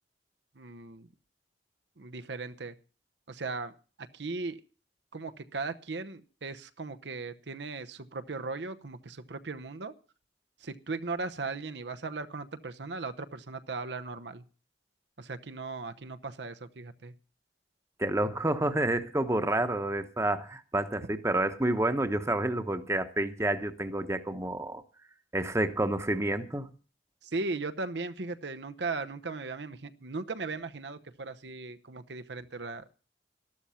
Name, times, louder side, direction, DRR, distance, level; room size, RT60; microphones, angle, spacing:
voice 1, 0.6-1.1 2.0-2.7 3.3-4.6 5.1-9.9 10.6-14.4 15.2-17.1 27.2-32.8, right 3 dB, 75° right, 0.9 m, -37 dB
voice 2, 18.0-24.8 25.3-26.7, right 1 dB, 15° right, 1.0 m, -29 dB
13.0 x 12.0 x 5.7 m
head